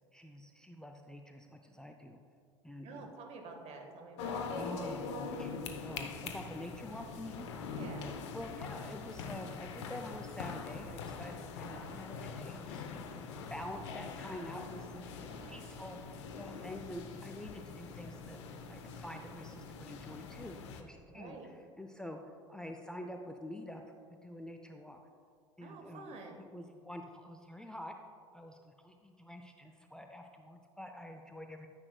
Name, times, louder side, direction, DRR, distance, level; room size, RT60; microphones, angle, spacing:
voice 1, 0.1-2.2 2.6-3.1 4.5-5.5 5.8-7.5 8.3-13.0 13.5-15.1 15.5-16.0 16.4-18.4 18.7-21.4 21.8-22.2 22.5-23.8 24.1-25.0 25.6-27.9 28.3-31.7, left 1 dB, 5° left, 4 dB, 0.5 m, -47 dB
voice 2, 2.8-4.9 7.7-8.2 15.1-15.6 21.1-21.5 25.6-26.5, right 3 dB, 45° right, 3 dB, 1.4 m, -49 dB
sound 1, 4.2-20.8, left 5 dB, 65° left, 0.7 m, -43 dB
11.0 x 9.6 x 2.3 m, 2.3 s
figure-of-eight pair, 65°, 16 cm